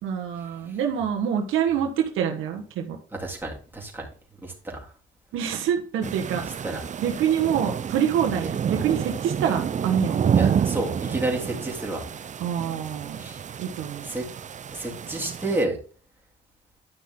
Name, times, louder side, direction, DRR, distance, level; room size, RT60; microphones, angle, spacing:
voice 1, 0.0-3.0 5.3-6.4 7.0-10.2 12.4-13.2 13.6-14.1, right 8 dB, 90° right, 2 dB, 1.6 m, -26 dB
voice 2, 3.2-4.1 4.4-4.8 6.6-6.8 10.3-12.0 13.2-13.4 14.0-14.3 14.7-15.8, right 2 dB, 10° right, -2 dB, 3.4 m, -30 dB
sound 1, 6.0-15.7, right 8 dB, 40° right, 0.5 m, -29 dB
11.0 x 5.9 x 3.8 m, 0.39 s
cardioid pair, 90°, 20 cm